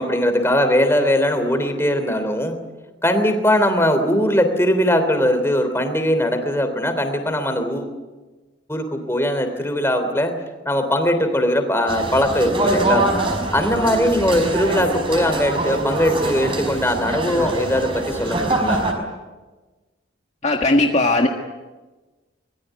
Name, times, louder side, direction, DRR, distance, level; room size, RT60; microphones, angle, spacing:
voice 1, 0.0-2.6 3.0-7.9 8.7-10.3 10.6-13.1 13.5-18.8, equal, 15° left, 8 dB, 3.3 m, -20 dB
sound 1, 11.9-18.9, right 2 dB, 25° right, 5.3 m, -24 dB
voice 2, 20.4-21.3, left 2 dB, 35° left, 2 dB, 1.6 m, -17 dB
24.5 x 21.5 x 9.3 m, 1.2 s
head